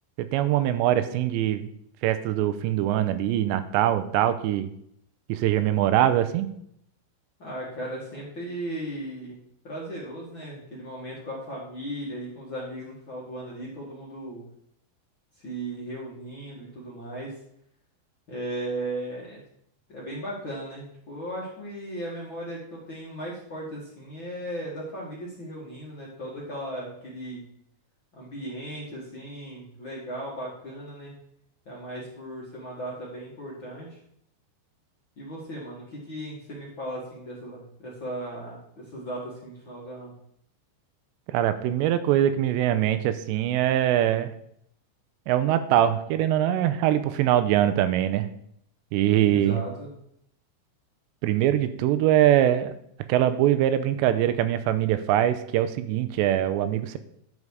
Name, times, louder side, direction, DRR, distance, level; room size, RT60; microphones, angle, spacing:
voice 1, 0.2-1.7 2.0-4.7 5.3-6.5 41.3-44.3 45.3-48.3 48.9-49.6 51.2-52.7 53.1-57.0, right 12 dB, 85° right, 11 dB, 2.8 m, -23 dB
voice 2, 7.4-9.4 9.6-14.4 15.4-17.3 18.3-19.4 19.9-27.4 28.1-31.1 31.7-34.0 35.2-40.1 49.2-49.9, right 1 dB, 40° left, -5 dB, 1.9 m, -36 dB
11.0 x 6.5 x 4.8 m, 0.71 s
omnidirectional pair, 5.1 m